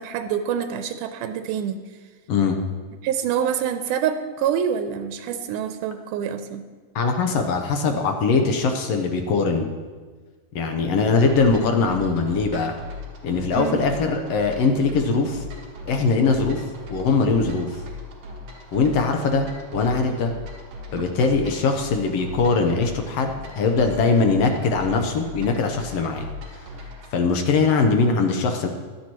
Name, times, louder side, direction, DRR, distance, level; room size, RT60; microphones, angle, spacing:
voice 1, 0.0-1.8 3.0-6.6 13.6-13.8 21.0-21.1, right 8 dB, 90° right, 8 dB, 2.2 m, -26 dB
voice 2, 6.9-9.7 10.5-12.7 13.2-15.4 15.9-16.6 16.9-17.8 18.7-19.5 19.7-20.3 20.9-26.3 27.1-28.7, left 4 dB, 65° left, 4 dB, 1.7 m, -21 dB
sound 1, 11.3-27.2, left 2 dB, 55° right, 2.6 m, -38 dB
16.0 x 11.5 x 3.0 m, 1.5 s
omnidirectional pair, 3.6 m